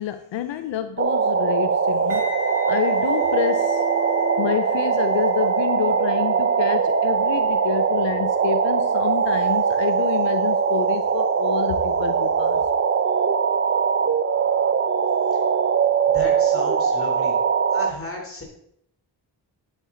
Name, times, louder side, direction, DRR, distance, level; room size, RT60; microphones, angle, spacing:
voice 1, 0.0-2.2 2.7-3.8 4.4-12.7, left 10 dB, 80° left, 0.6 m, -28 dB
sound 1, 1.0-17.9, right 6 dB, 30° right, 0.6 m, -21 dB
sound 2, 2.1-11.1 11.3-11.6, left 4 dB, 5° right, 4.6 m, -40 dB
voice 2, 16.1-17.3 17.7-18.4, left 1 dB, 30° left, 3.5 m, -34 dB
10.5 x 7.8 x 3.8 m
cardioid pair, 70°, 44 cm